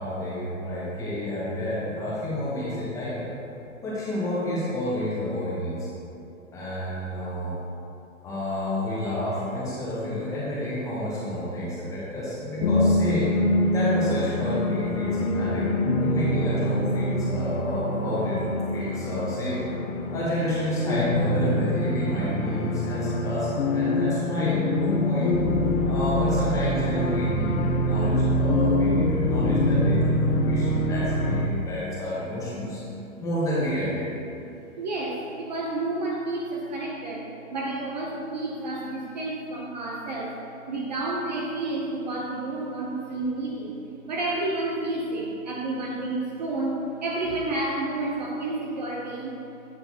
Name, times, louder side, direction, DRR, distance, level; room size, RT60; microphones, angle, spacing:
voice 1, 0.0-3.3 3.8-5.9 6.5-7.5 8.2-13.4 13.7-15.7 16.0-19.6 20.1-25.4 25.8-32.8 33.2-34.1, left 1 dB, 10° left, -8 dB, 0.8 m, -30 dB
sound 1, 12.6-31.5, left 1 dB, 80° left, 0.8 m, -25 dB
voice 2, 34.8-40.3 40.7-43.8 44.1-49.4, right 2 dB, 30° right, -2 dB, 0.6 m, -30 dB
8.2 x 6.3 x 2.8 m, 2.7 s
hypercardioid pair, 155°, 41 cm